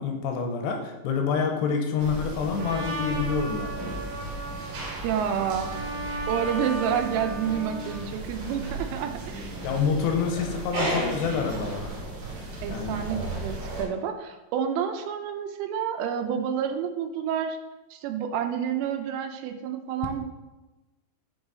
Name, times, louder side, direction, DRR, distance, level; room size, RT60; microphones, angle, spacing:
voice 1, 0.0-3.8 9.6-11.9 12.7-13.0, left 5 dB, 80° left, 3 dB, 2.5 m, -27 dB
sound 1, 2.0-13.8, right 1 dB, 50° right, 2.9 m, -35 dB
Trumpet, 2.6-8.0, right 2 dB, 65° right, 3.1 m, -36 dB
voice 2, 5.0-5.7 6.3-9.5 12.6-17.6 17.9-20.3, right 8 dB, 85° right, 6 dB, 3.2 m, -29 dB
11.5 x 3.9 x 4.0 m, 1.1 s
omnidirectional pair, 5.8 m